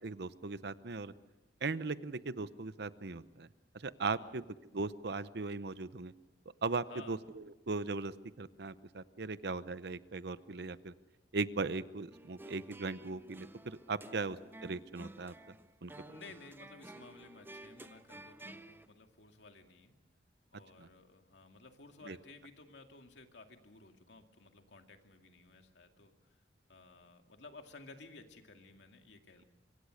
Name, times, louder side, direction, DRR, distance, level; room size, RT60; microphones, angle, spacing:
voice 1, 0.0-1.1 1.6-3.5 3.7-4.4 4.7-6.1 6.6-10.9 11.3-15.3 15.8-15.9 20.8-20.9 22.1-22.2, right 3 dB, 65° right, 15 dB, 0.8 m, -38 dB
sound 1, 12.1-18.9, right 1 dB, 10° right, 0.7 m, -53 dB
voice 2, 16.1-20.0 20.5-26.4 26.7-29.4, left 3 dB, 85° left, 5 dB, 2.3 m, -55 dB
25.5 x 24.0 x 6.5 m, 1.1 s
head